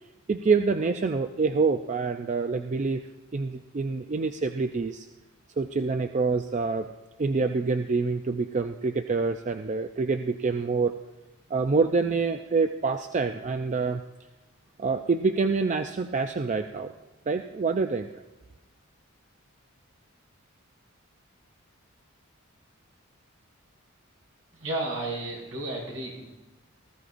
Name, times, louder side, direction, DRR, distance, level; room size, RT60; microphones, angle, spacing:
voice 1, 0.3-3.0 3.3-5.1 5.6-6.9 7.2-10.9 11.5-14.0 14.8-16.9 17.3-18.1, right 4 dB, 35° right, 7 dB, 0.4 m, -26 dB
voice 2, 24.5-26.3, right 2 dB, 70° right, -4 dB, 5.3 m, -33 dB
19.5 x 14.0 x 2.6 m, 1.1 s
head